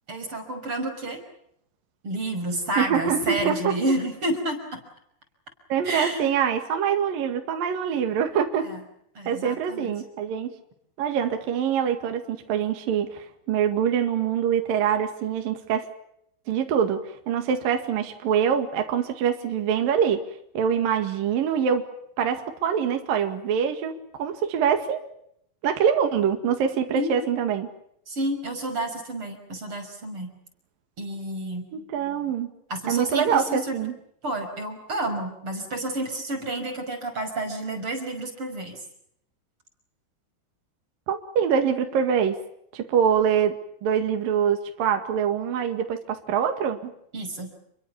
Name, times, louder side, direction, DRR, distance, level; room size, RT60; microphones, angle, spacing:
voice 1, 0.1-1.2 2.0-4.8 5.8-6.3 8.6-8.8 9.1-9.9 26.9-27.1 28.1-30.3 31.0-31.7 32.7-33.7 34.2-38.8 47.1-47.5, right 1 dB, 30° right, 6 dB, 6.2 m, -30 dB
voice 2, 2.8-3.7 5.7-8.7 9.3-10.5 11.0-15.9 16.5-17.0 17.3-20.2 20.5-21.8 22.2-23.9 24.2-25.0 25.6-27.7 31.7-32.5 32.9-33.9 41.1-42.4 42.7-43.6 43.8-46.9, right 8 dB, 60° right, 5 dB, 3.6 m, -24 dB
30.0 x 23.0 x 7.1 m, 0.74 s
omnidirectional pair, 5.0 m